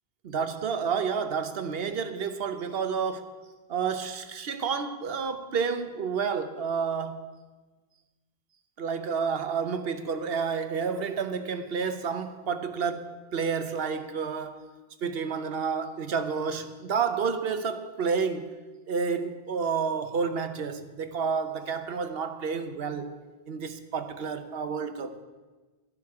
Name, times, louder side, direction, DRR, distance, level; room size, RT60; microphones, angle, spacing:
voice 1, 0.2-3.3 3.7-7.2 8.8-14.6 15.0-18.5 18.9-23.2 23.5-25.1, right 6 dB, 70° right, 1.0 m, -30 dB
12.0 x 11.0 x 4.8 m
omnidirectional pair, 1.0 m